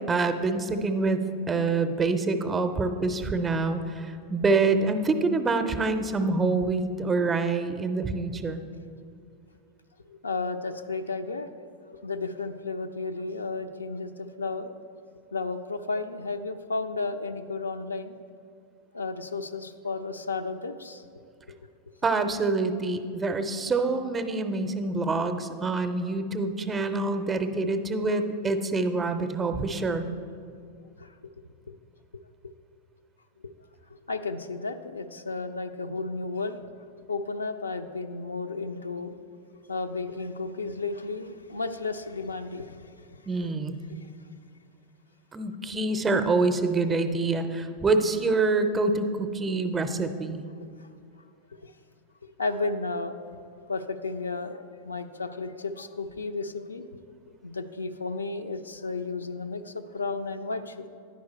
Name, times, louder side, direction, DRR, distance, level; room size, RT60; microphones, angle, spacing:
voice 1, 0.1-1.2 1.5-8.6 22.0-30.1 43.3-43.8 45.3-50.4, right 3 dB, 20° right, 8 dB, 0.5 m, -26 dB
voice 2, 10.1-11.5 11.8-14.7 15.3-18.2 18.9-21.1 28.1-28.2 31.0-31.1 32.4-32.5 33.4-33.5 34.1-36.6 37.1-39.1 39.7-43.1 50.8-50.9 51.6-51.7 52.4-56.9 57.4-60.9, left 3 dB, 75° left, 8 dB, 0.3 m, -33 dB
10.5 x 4.8 x 4.1 m, 2.4 s
figure-of-eight pair, 90°, 0 cm